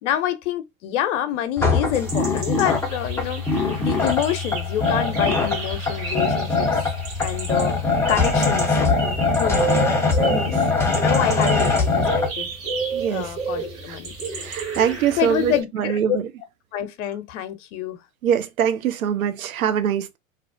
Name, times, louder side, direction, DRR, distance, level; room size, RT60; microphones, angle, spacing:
voice 1, 0.0-6.7 7.2-8.8 9.3-9.9 10.2-12.5 13.1-14.1 15.2-16.2 16.7-18.0, left 11 dB, 60° left, 0.6 m, -27 dB
sound 1, 1.6-12.3, left 4 dB, 5° left, 0.5 m, -22 dB
sound 2, 1.9-15.6, right 4 dB, 30° right, 1.2 m, -32 dB
voice 2, 12.9-13.3 13.9-14.0 14.3-16.2 18.2-20.2, right 8 dB, 80° right, 0.5 m, -23 dB
2.4 x 2.1 x 2.4 m
hypercardioid pair, 95°, 42 cm